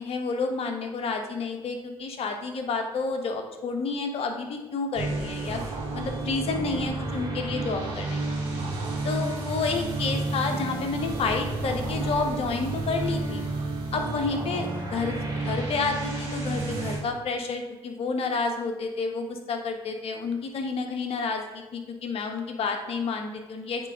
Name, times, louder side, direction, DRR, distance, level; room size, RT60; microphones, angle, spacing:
voice 1, 0.0-5.6 5.9-8.2 9.0-13.4 13.9-15.2 15.4-23.9, left 4 dB, 60° left, 4 dB, 1.2 m, -30 dB
sound 1, 5.0-17.0, right 2 dB, 80° right, 2.1 m, -31 dB
8.0 x 3.4 x 5.1 m, 1.1 s
supercardioid pair, 65°, 11 cm